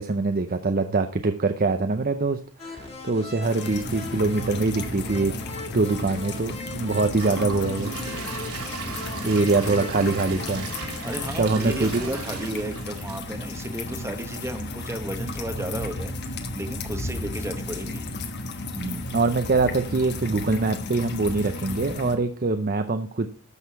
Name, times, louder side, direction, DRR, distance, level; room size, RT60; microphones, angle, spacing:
voice 1, 0.0-5.3 5.7-7.9 8.4-8.7 9.2-10.7 11.4-12.0 18.8-23.3, right 3 dB, 40° right, 7 dB, 0.6 m, -24 dB
sound 1, 2.6-11.9, left 2 dB, 30° left, 2.3 m, -40 dB
sound 2, 3.4-22.2, left 2 dB, 50° left, 1.2 m, -34 dB
Gurgling / Toilet flush / Trickle dribble, 6.9-14.0 14.4-14.5 15.0-15.1, right 4 dB, 85° right, 3.1 m, -37 dB
voice 2, 9.3-9.7 11.0-18.0, right 1 dB, 10° right, 8 dB, 1.0 m, -34 dB
12.5 x 6.6 x 4.6 m, 0.38 s
head